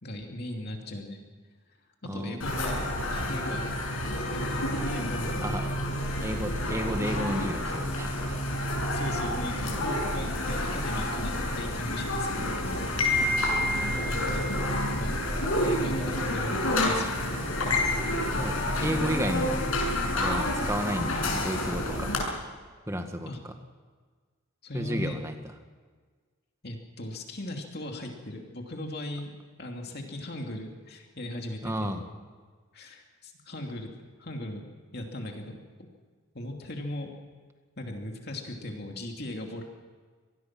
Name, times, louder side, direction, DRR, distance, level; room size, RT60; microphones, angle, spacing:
voice 1, 0.0-1.2 2.0-2.7 3.1-3.6 4.3-5.3 8.9-12.6 13.0-13.4 14.0-14.4 15.0-15.2 15.6-17.2 23.3-23.4 24.6-25.2 26.6-29.3 29.6-32.2 32.7-33.9 34.2-35.6 36.3-37.1 37.8-39.6, left 1 dB, 50° left, 2 dB, 2.8 m, -38 dB
voice 2, 2.0-2.5 5.4-5.7 6.2-8.4 12.8-13.1 17.0-17.2 18.1-19.6 20.1-22.1 22.9-23.3 24.7-25.5 31.6-32.0, equal, 15° right, 5 dB, 1.8 m, -32 dB
sound 1, 2.4-22.2, left 1 dB, 85° left, 6.5 m, -29 dB
25.5 x 19.0 x 6.1 m, 1.5 s
head